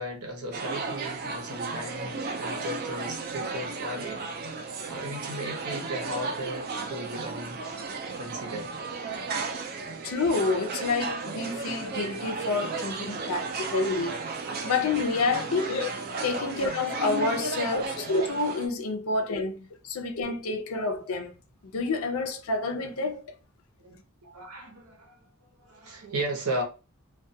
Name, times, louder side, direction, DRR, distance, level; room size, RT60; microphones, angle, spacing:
voice 1, 0.0-7.6 8.1-8.7 15.9-16.0 17.0-17.1 17.9-18.0 22.7-22.9 23.8-24.0 24.2-25.3 25.6-26.6, right 1 dB, 85° right, 0.8 m, -36 dB
sound 1, 0.5-18.7, right 3 dB, 40° right, 0.4 m, -34 dB
voice 2, 10.0-14.2 14.6-15.9 16.2-21.3 21.7-23.3, left 3 dB, 70° left, 0.5 m, -28 dB
2.3 x 2.2 x 2.6 m
head